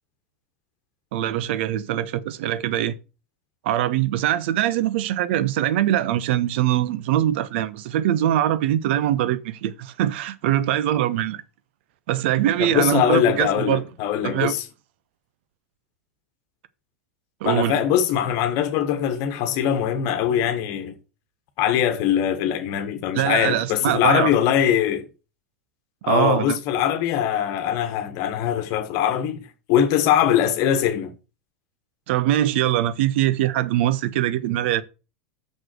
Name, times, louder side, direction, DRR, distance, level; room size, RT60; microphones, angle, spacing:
voice 1, 1.1-3.0 3.6-11.4 12.1-13.8 14.2-14.5 17.4-17.8 23.1-24.3 26.1-26.6 32.1-34.8, right 12 dB, 55° right, 0.8 m, -22 dB
voice 2, 12.6-14.6 17.4-20.9 21.6-25.0 26.0-29.4 29.7-31.1, left 10 dB, 45° left, 1.4 m, -22 dB
6.6 x 6.3 x 6.1 m
figure-of-eight pair, 85°, 7 cm